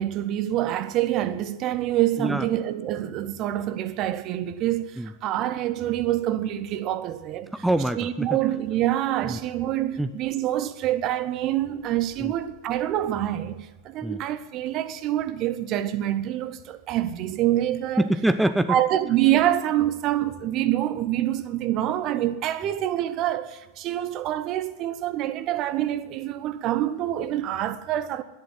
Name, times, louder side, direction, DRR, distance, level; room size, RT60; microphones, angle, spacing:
voice 1, 0.0-7.5 8.0-18.1 18.7-28.2, right 13 dB, 35° right, 0.9 m, -26 dB
voice 2, 7.5-8.4 9.2-9.4 10.0-10.1 12.2-12.3 14.0-14.2 18.0-18.8, right 1 dB, 5° right, 0.5 m, -24 dB
11.0 x 10.5 x 9.8 m
figure-of-eight pair, 90°, 0 cm